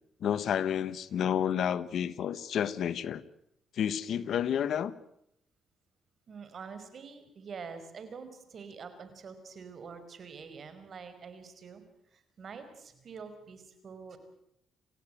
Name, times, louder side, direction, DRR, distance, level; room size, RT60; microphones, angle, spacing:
voice 1, 0.2-3.2 3.7-4.9, left 9 dB, 70° left, 16 dB, 1.2 m, -30 dB
voice 2, 6.3-14.2, right 5 dB, 50° right, 10 dB, 5.1 m, -46 dB
28.5 x 16.0 x 9.1 m, 0.78 s
cardioid pair, 90°, 0 cm